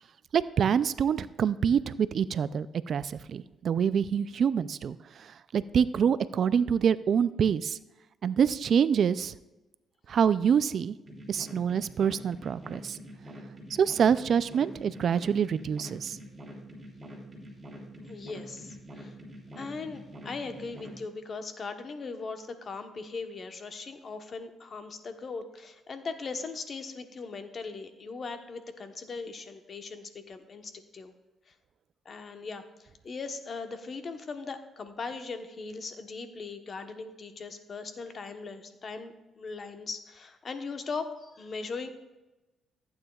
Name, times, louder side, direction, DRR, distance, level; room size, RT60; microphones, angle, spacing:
voice 1, 0.3-7.8 8.2-9.3 10.1-11.0 11.3-13.0 13.7-16.2, right 7 dB, 60° right, 15 dB, 0.3 m, -26 dB
sound 1, 11.1-21.0, equal, 25° right, 2.8 m, -45 dB
voice 2, 18.0-19.2 19.6-31.1 31.5-31.6 32.0-41.9, left 4 dB, 45° left, 7 dB, 1.0 m, -39 dB
14.5 x 8.9 x 2.4 m, 1.1 s
cardioid pair, 90°, 0 cm